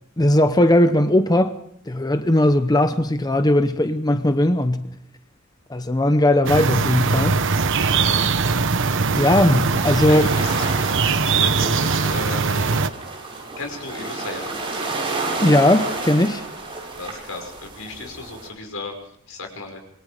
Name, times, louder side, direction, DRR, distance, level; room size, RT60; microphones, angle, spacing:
voice 1, 0.2-1.5 1.9-4.9 5.7-7.4 9.2-10.3 15.4-16.4, left 1 dB, 20° left, 0.8 m, -18 dB
sound 1, 6.5-12.9, right 4 dB, 65° right, 1.1 m, -21 dB
sound 2, 7.5-18.5, right 3 dB, 25° right, 7.6 m, -31 dB
voice 2, 8.0-8.4 10.1-10.6 11.0-12.8 13.6-14.6 17.0-18.9 19.3-19.8, left 2 dB, 80° left, 5.6 m, -34 dB
26.5 x 23.0 x 5.1 m
head